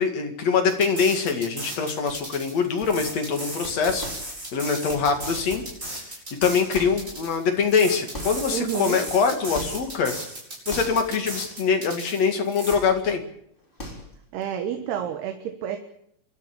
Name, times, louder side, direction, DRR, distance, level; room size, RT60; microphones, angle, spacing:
voice 1, 0.0-4.1 4.5-5.6 6.4-10.1 10.7-13.2, left 5 dB, 50° left, 5 dB, 2.9 m, -23 dB
sound 1, 0.7-12.7, right 1 dB, 20° right, 7.0 m, -36 dB
sound 2, 2.1-2.4 2.8-3.3 3.6-4.5 4.8-5.9 6.2-8.7 9.1-10.1 10.7-11.3 11.6-11.8 12.7-13.2 13.6-14.4, left 1 dB, 15° left, 3.5 m, -40 dB
voice 2, 8.5-9.0 14.3-15.8, right 9 dB, 80° right, 6 dB, 3.4 m, -29 dB
27.5 x 12.5 x 8.6 m, 0.71 s
omnidirectional pair, 4.6 m